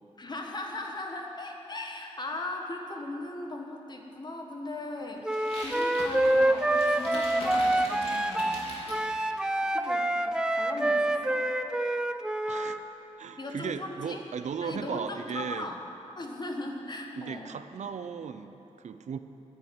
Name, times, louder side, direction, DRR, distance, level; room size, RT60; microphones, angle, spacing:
voice 1, 0.2-8.7 9.6-11.4 13.4-14.2 14.6-15.8 16.1-17.5, left 2 dB, 35° left, 2 dB, 1.5 m, -38 dB
Wind instrument woodwind instrument, 5.2-12.8, right 1 dB, 5° right, 0.5 m, -27 dB
sound 1, 5.3-9.0, left 1 dB, 55° left, 3.1 m, -41 dB
voice 2, 12.5-12.8 13.2-15.7 17.1-19.2, right 6 dB, 75° right, 10 dB, 0.6 m, -36 dB
10.5 x 9.6 x 9.5 m, 3.0 s
wide cardioid pair, 120°, 12 cm